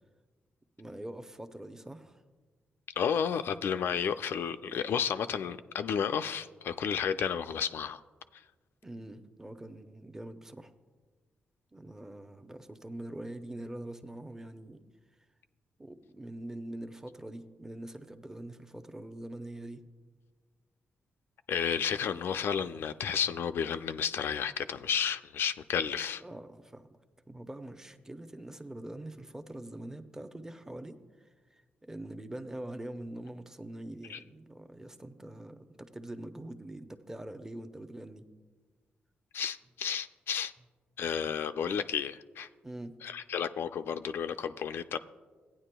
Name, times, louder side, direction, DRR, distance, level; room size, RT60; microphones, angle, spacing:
voice 1, 0.8-2.2 8.8-10.7 11.7-14.8 15.8-19.8 26.2-26.9 27.3-38.3 42.6-43.0, right 1 dB, 10° right, 8 dB, 0.6 m, -44 dB
voice 2, 3.0-8.0 8.3-8.4 21.5-26.2 34.1-34.2 39.3-40.5 41.0-42.5 43.0-45.0, left 7 dB, 70° left, 10 dB, 0.3 m, -32 dB
15.5 x 9.3 x 2.2 m, 1.4 s
cardioid pair, 70°, 4 cm